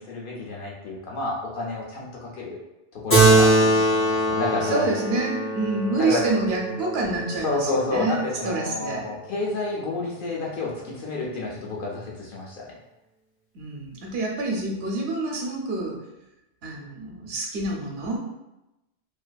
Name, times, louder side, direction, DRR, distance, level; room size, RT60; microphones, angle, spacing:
voice 1, 0.0-2.6 2.9-4.9 6.0-6.2 7.4-12.8, left 3 dB, 55° left, -3 dB, 0.7 m, -30 dB
Keyboard (musical), 3.1-8.0, right 2 dB, 15° left, 0.5 m, -22 dB
voice 2, 4.6-9.1 13.5-16.0 16.6-18.2, right 2 dB, 70° right, -1 dB, 0.8 m, -27 dB
2.5 x 2.4 x 2.2 m, 0.94 s
omnidirectional pair, 1.1 m